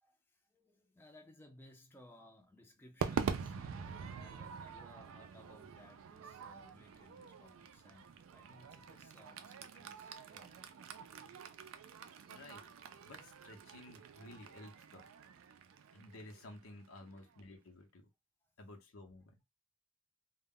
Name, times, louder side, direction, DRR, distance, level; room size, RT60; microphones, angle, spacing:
voice 1, 0.0-11.3 17.0-17.3 18.4-18.5, left 1 dB, 10° left, 0.4 m, -62 dB
Crowd / Fireworks, 3.0-17.4, right 6 dB, 75° right, 0.3 m, -45 dB
voice 2, 12.3-12.7 13.0-15.1 15.9-18.1 18.6-19.4, left 2 dB, 90° left, 0.7 m, -54 dB
2.1 x 2.0 x 3.5 m
head